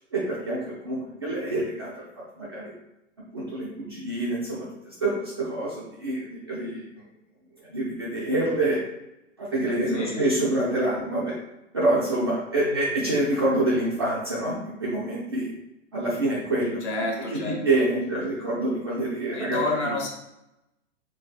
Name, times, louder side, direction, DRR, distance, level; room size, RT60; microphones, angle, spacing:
voice 1, 0.1-1.9 2.4-2.7 3.3-6.8 7.7-8.8 9.4-11.3 11.7-15.5 15.9-16.8 17.4-19.6, right 1 dB, 20° right, -8 dB, 0.3 m, -26 dB
voice 2, 9.9-10.2 12.5-12.8 16.8-17.6 19.3-20.1, left 2 dB, 60° left, -1 dB, 1.2 m, -29 dB
3.6 x 3.3 x 2.3 m, 0.89 s
hypercardioid pair, 145°, 39 cm